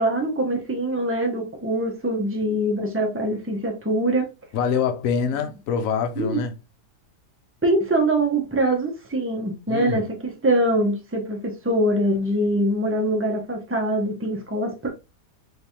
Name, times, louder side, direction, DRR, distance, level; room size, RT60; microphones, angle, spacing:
voice 1, 0.0-4.3 6.2-6.4 7.6-14.9, right 1 dB, 15° right, 0.5 m, -23 dB
voice 2, 4.5-6.5 9.7-10.1, left 7 dB, 60° left, 1.0 m, -25 dB
3.3 x 3.2 x 2.7 m
omnidirectional pair, 1.7 m